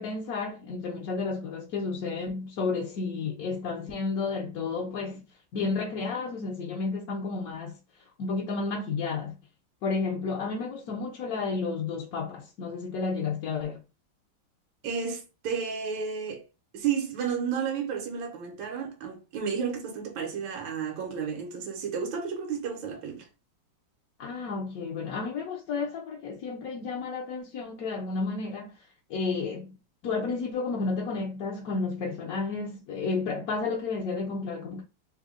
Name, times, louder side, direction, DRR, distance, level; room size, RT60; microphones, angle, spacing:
voice 1, 0.0-5.2 5.5-9.4 9.8-13.8 24.2-29.8 30.0-34.8, left 4 dB, 65° left, 0.9 m, -32 dB
voice 2, 14.8-16.4 16.7-23.3, right 6 dB, 90° right, 1.5 m, -32 dB
3.4 x 2.0 x 3.6 m
omnidirectional pair, 2.0 m